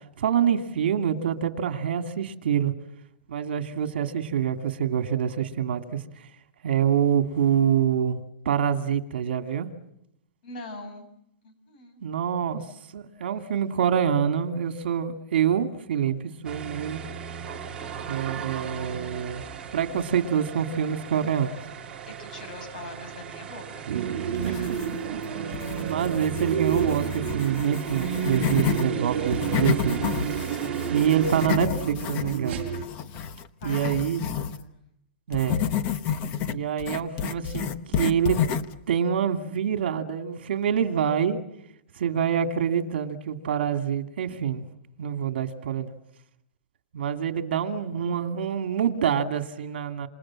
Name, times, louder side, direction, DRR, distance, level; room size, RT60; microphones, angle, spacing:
voice 1, 0.2-2.7 3.3-6.0 6.6-9.7 12.0-12.6 12.9-17.0 18.1-19.4 19.7-21.5 23.9-24.0 24.4-24.5 25.8-30.0 30.9-32.6 33.6-34.3 35.3-35.6 36.5-38.4 38.9-41.4 42.0-44.6 45.0-45.9 46.9-50.1, right 8 dB, 70° right, 7 dB, 2.5 m, -26 dB
voice 2, 10.4-11.1 11.4-12.0 22.1-23.9 24.4-24.7 33.6-34.0 34.6-34.8, left 2 dB, 50° left, 8 dB, 7.3 m, -42 dB
sound 1, 16.4-31.5, right 7 dB, 10° right, 3.1 m, -39 dB
sound 2, 23.9-32.8, right 8 dB, 30° right, 5.0 m, -30 dB
sound 3, 24.3-25.2 25.5-28.9 29.2-34.6 35.3-38.8, left 8 dB, 25° left, 1.0 m, -30 dB
28.0 x 27.5 x 7.6 m, 0.78 s
supercardioid pair, 175°, 6 cm